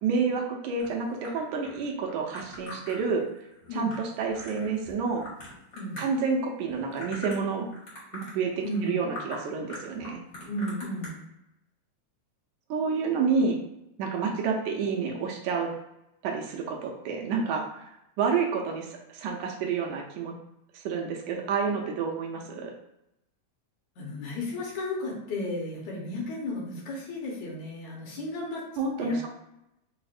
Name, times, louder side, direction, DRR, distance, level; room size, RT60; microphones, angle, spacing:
voice 1, 0.0-3.3 3.7-5.2 6.0-7.7 8.1-10.2 12.7-13.6 14.0-15.7 16.2-17.9 18.2-20.3 20.7-22.7 28.8-29.3, right 5 dB, 85° right, 1 dB, 2.0 m, -29 dB
sound 1, 0.8-6.3 6.7-7.5 7.7-8.3 8.7-8.9 9.1-9.4 9.7-11.1, left 1 dB, 50° left, 0.9 m, -43 dB
voice 2, 8.6-8.9 10.5-11.1 24.0-28.6 29.0-29.2, left 1 dB, 75° left, -3 dB, 2.2 m, -34 dB
6.0 x 2.0 x 2.4 m, 0.86 s
omnidirectional pair, 3.4 m